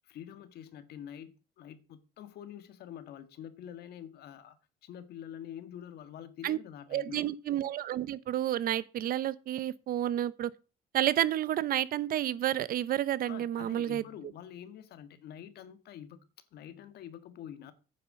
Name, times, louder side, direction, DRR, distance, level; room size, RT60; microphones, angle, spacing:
voice 1, 0.0-4.6 4.8-7.3 13.2-16.2 16.5-17.7, left 9 dB, 70° left, 1.6 m, -46 dB
voice 2, 6.9-10.5 10.9-14.0, right 12 dB, 60° right, 0.8 m, -30 dB
9.5 x 6.9 x 6.4 m
cardioid pair, 110°, 17 cm